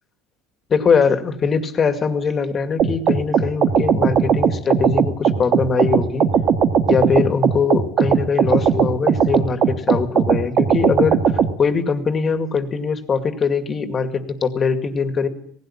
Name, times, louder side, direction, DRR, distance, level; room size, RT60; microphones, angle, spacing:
voice 1, 0.7-6.3 6.9-11.2 11.6-15.3, left 5 dB, 30° left, 9 dB, 2.2 m, -21 dB
sound 1, 2.8-11.5, right 7 dB, 50° right, 1.8 m, -18 dB
18.5 x 16.0 x 8.8 m, 0.64 s
supercardioid pair, 120°, 0 cm